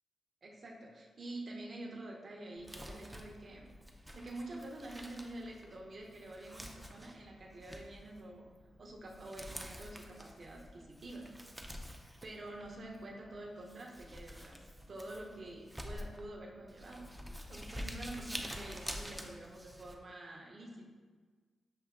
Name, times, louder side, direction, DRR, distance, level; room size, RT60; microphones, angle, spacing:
voice 1, 0.4-3.7 4.1-8.5 8.8-11.3 12.2-14.6 14.9-20.9, right 1 dB, 50° right, 0 dB, 0.7 m, -47 dB
Crumpling crinkling, 2.6-19.9, equal, 5° right, 0.4 m, -48 dB
6.7 x 2.7 x 2.4 m, 1.5 s
cardioid pair, 90°, 0 cm